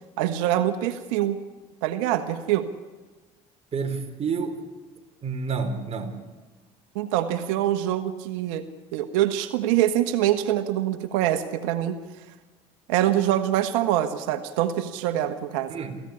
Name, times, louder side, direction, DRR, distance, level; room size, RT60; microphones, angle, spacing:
voice 1, 0.2-1.4 1.8-2.7 6.9-8.6 8.9-12.0 12.9-15.7, right 12 dB, 85° right, 9 dB, 1.5 m, -24 dB
voice 2, 3.7-4.6 5.2-6.2 15.7-15.9, right 5 dB, 40° right, 6 dB, 4.2 m, -29 dB
28.0 x 15.5 x 10.0 m, 1.3 s
supercardioid pair, 90°, 17 cm